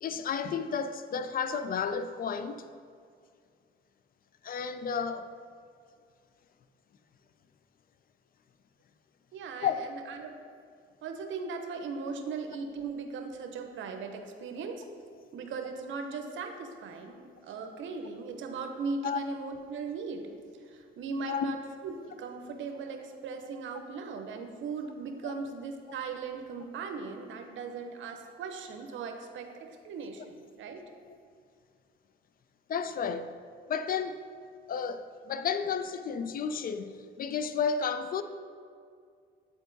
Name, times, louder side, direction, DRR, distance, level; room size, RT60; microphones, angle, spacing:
voice 1, 0.0-2.6 4.4-5.3 9.6-9.8 19.0-19.2 21.3-21.6 25.2-25.3 31.1-31.2 32.7-33.3 33.7-34.2 34.7-38.2, left 6 dB, 45° left, 0.4 m, -32 dB
voice 2, 9.3-10.3 11.0-14.8 15.3-30.8, right 4 dB, 75° right, 0.8 m, -38 dB
8.0 x 4.5 x 3.9 m
cardioid pair, 90°, 20 cm